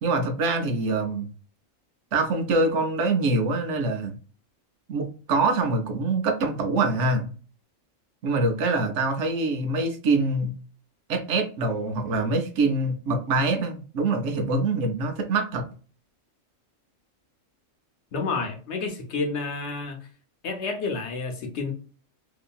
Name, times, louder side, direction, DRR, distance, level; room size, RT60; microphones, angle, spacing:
voice 1, 0.0-1.3 2.1-4.2 4.9-7.3 8.2-10.5 11.1-15.7, right 3 dB, 70° right, 5 dB, 0.9 m, -24 dB
voice 2, 18.1-20.1 20.4-21.7, left 4 dB, 65° left, 3 dB, 0.9 m, -30 dB
2.8 x 2.5 x 2.2 m, 0.38 s
omnidirectional pair, 1.3 m